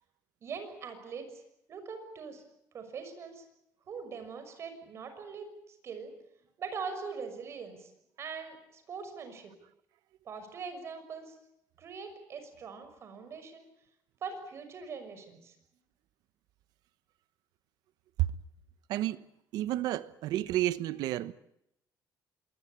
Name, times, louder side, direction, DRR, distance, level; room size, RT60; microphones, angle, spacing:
voice 1, 0.4-1.4 1.7-2.4 2.7-3.4 3.9-6.1 6.6-7.9 8.2-9.5 10.2-11.3 11.8-13.7 14.2-15.5, right 5 dB, 45° right, 6.2 m, -42 dB
voice 2, 18.9-19.2 19.5-21.3, right 14 dB, 85° right, 1.1 m, -30 dB
26.5 x 21.5 x 8.2 m
cardioid pair, 155°, 7 cm